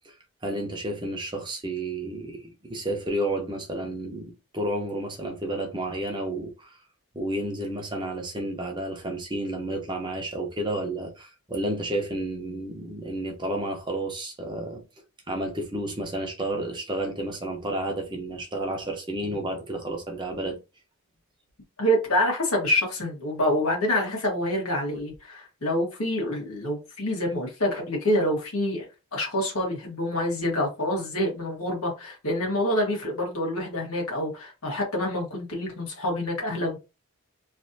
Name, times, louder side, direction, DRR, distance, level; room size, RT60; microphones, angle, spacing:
voice 1, 0.4-6.8 7.1-14.8 15.3-20.6, right 1 dB, 20° right, 0.7 m, -31 dB
voice 2, 21.8-36.8, left 1 dB, 75° left, 1.5 m, -27 dB
3.2 x 2.6 x 2.7 m
head